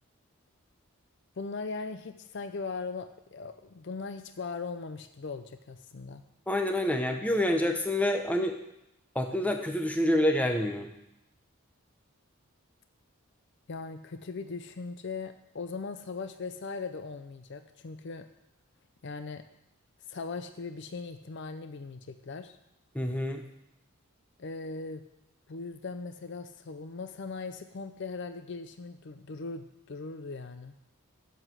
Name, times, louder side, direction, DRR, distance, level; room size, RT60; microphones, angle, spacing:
voice 1, 1.4-6.2 13.7-18.3 19.0-19.4 20.1-22.5 24.4-25.0 25.5-30.7, left 4 dB, 55° left, 9 dB, 0.5 m, -39 dB
voice 2, 6.5-8.5 9.1-10.9 22.9-23.4, left 1 dB, 5° left, 4 dB, 0.7 m, -27 dB
7.9 x 7.8 x 7.6 m, 0.85 s
head